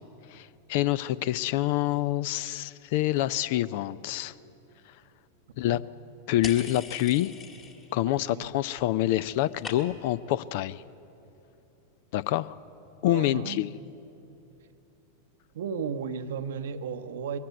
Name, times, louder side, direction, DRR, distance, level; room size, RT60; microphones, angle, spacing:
voice 1, 0.3-4.3 5.6-5.8 6.3-7.3 7.9-10.8 12.1-12.5 13.0-13.7, left 14 dB, 55° left, 0.5 m, -27 dB
sound 1, 6.4-8.0 8.3-8.9 9.1-10.2, left 6 dB, 35° left, 2.1 m, -42 dB
voice 2, 8.0-8.5 13.0-13.6 15.5-17.4, right 6 dB, 65° right, 0.8 m, -34 dB
22.0 x 14.5 x 9.1 m
figure-of-eight pair, 90°, 0 cm